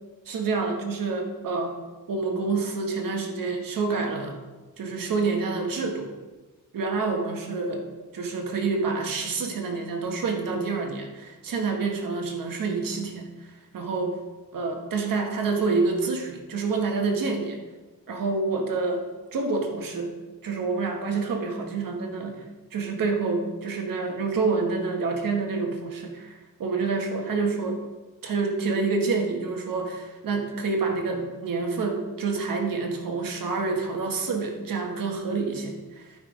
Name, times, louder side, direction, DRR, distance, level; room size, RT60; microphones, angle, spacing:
voice 1, 0.3-1.8 2.1-4.4 4.8-6.1 6.7-7.8 8.1-13.3 13.7-14.2 14.5-17.6 18.1-19.0 19.3-20.1 20.4-22.4 22.7-27.8 28.2-36.0, right 4 dB, 70° right, 3 dB, 1.6 m, -27 dB
11.5 x 5.7 x 5.0 m, 1.3 s
cardioid pair, 125°, 35 cm